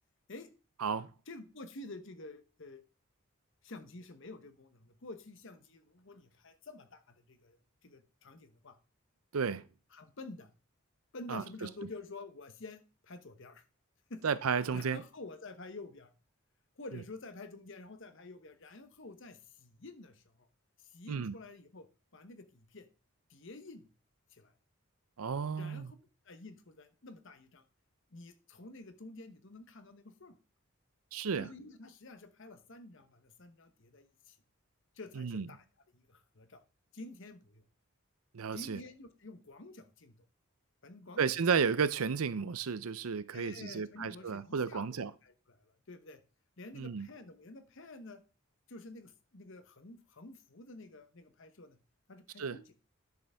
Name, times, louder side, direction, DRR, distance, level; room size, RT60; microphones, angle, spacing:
voice 1, 1.3-2.8 3.6-8.8 9.9-10.5 11.1-13.6 14.1-14.2 14.7-16.1 16.8-20.5 20.8-21.9 22.1-22.9 23.3-23.9 24.3-24.5 25.5-26.0 26.2-27.6 28.1-30.3 31.4-34.4 35.0-35.6 35.9-36.6 36.9-37.6 38.5-40.2 40.8-41.4 43.3-46.2 46.6-48.2 48.7-51.8 52.1-52.7, left 2 dB, 60° left, 1.0 m, -49 dB
voice 2, 9.3-9.6 11.3-11.4 14.2-15.0 21.1-21.3 25.2-25.9 31.1-31.5 35.2-35.5 38.3-38.8 41.2-45.1 46.8-47.1 52.4-52.6, right 6 dB, 80° right, 0.6 m, -33 dB
10.5 x 6.7 x 3.5 m
head